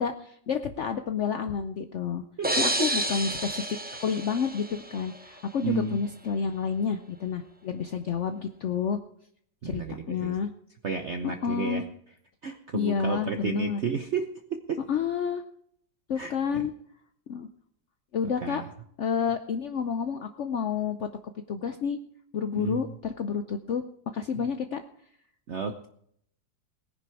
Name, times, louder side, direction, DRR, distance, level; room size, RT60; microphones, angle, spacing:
voice 1, 0.0-2.2 2.6-9.0 9.6-10.5 11.2-11.9 12.7-13.8 14.9-15.4 16.1-16.7 17.3-17.5 18.1-18.6 19.0-21.1 21.5-22.0 22.3-23.8 24.1-24.8, left 6 dB, 75° left, 8 dB, 0.6 m, -29 dB
sound 1, 2.4-5.2, right 1 dB, 10° right, 0.4 m, -30 dB
voice 2, 2.4-2.9 5.6-6.0 9.6-10.3 10.8-11.8 12.4-14.3 14.7-14.8 16.2-16.6 18.4-18.6 22.6-22.8 24.4-24.5 25.5-25.9, right 5 dB, 50° right, 6 dB, 0.9 m, -32 dB
18.0 x 10.0 x 4.7 m, 0.67 s
omnidirectional pair, 2.1 m